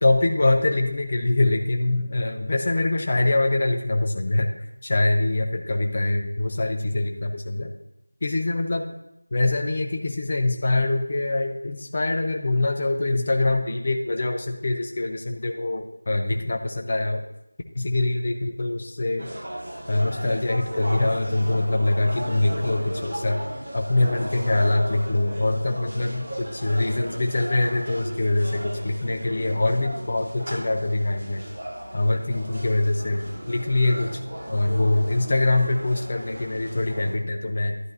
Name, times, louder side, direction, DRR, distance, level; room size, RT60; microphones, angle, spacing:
voice 1, 0.0-7.7 8.2-8.9 9.3-17.2 17.7-19.3 19.9-23.4 23.7-31.4 31.9-34.2 34.5-37.8, left 2 dB, 30° left, 3 dB, 0.6 m, -24 dB
sound 1, 19.2-37.1, right 1 dB, 40° right, 3.4 m, -36 dB
11.0 x 11.0 x 2.7 m, 0.84 s
figure-of-eight pair, 175°, 0 cm